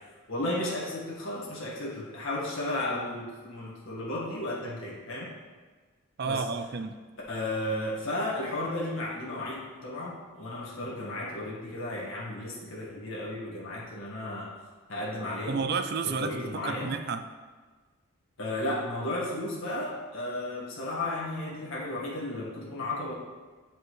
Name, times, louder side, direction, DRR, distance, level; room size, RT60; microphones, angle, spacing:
voice 1, 0.3-5.3 6.2-6.4 7.3-14.5 14.9-15.6 16.0-16.9 18.4-23.1, left 1 dB, 70° left, -5 dB, 1.6 m, -34 dB
voice 2, 6.2-7.0 15.5-17.2, right 5 dB, 45° right, 8 dB, 0.4 m, -31 dB
7.9 x 5.1 x 3.2 m, 1.4 s
head